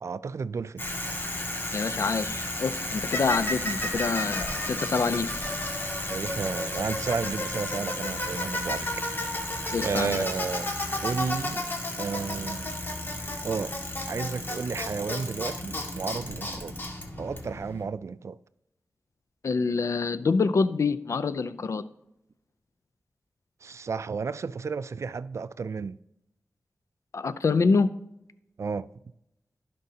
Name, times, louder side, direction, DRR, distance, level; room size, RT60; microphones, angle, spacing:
voice 1, 0.0-0.8 6.1-9.2 9.8-10.7 11.0-11.7 12.0-12.7 13.4-13.8 14.1-16.8 17.2-18.4 23.6-26.0 28.6-28.9, right 5 dB, 65° right, 0.3 m, -32 dB
Bicycle, 0.8-17.8, left 1 dB, 40° left, 1.8 m, -32 dB
voice 2, 1.7-5.3 9.7-10.2 19.4-21.8 27.1-27.9, left 4 dB, 70° left, 0.5 m, -26 dB
15.5 x 5.3 x 2.8 m
cardioid pair, 55°, 5 cm